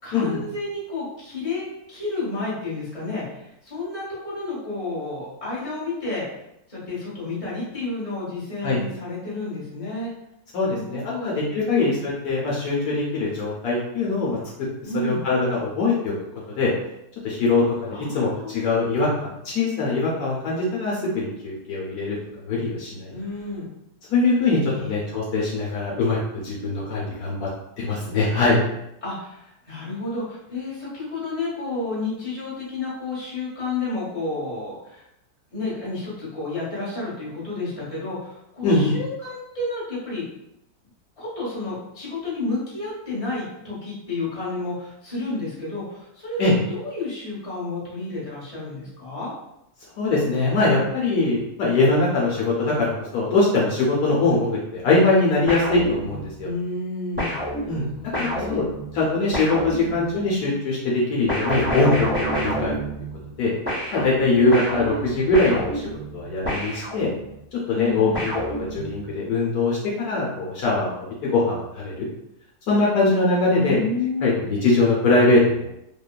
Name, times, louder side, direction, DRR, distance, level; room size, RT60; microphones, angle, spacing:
voice 1, 0.0-6.2 6.7-10.1 10.6-11.3 11.7-12.0 14.8-15.2 17.9-18.7 23.1-23.7 24.7-25.1 29.0-35.0 35.5-40.2 41.2-49.3 56.4-57.4 57.6-58.6 64.5-65.1 67.7-68.2 73.5-74.4, left 3 dB, 25° left, -8 dB, 1.1 m, -31 dB
voice 2, 10.5-14.4 15.0-16.2 16.6-16.7 17.2-22.2 22.4-23.2 24.1-27.5 27.8-28.6 38.6-38.9 46.4-46.5 50.0-56.5 57.7-57.8 58.2-58.7 58.9-62.8 63.4-63.5 63.9-65.8 66.1-67.1 67.5-71.0 71.2-72.1 72.7-73.8 74.2-75.7, left 3 dB, 75° left, -4 dB, 1.1 m, -22 dB
sound 1, 55.5-56.5 57.2-60.3 61.3-63.4 63.7-67.4 68.1-69.1, right 1 dB, 10° right, 0.9 m, -29 dB
2.9 x 2.2 x 2.2 m, 0.82 s
omnidirectional pair, 1.7 m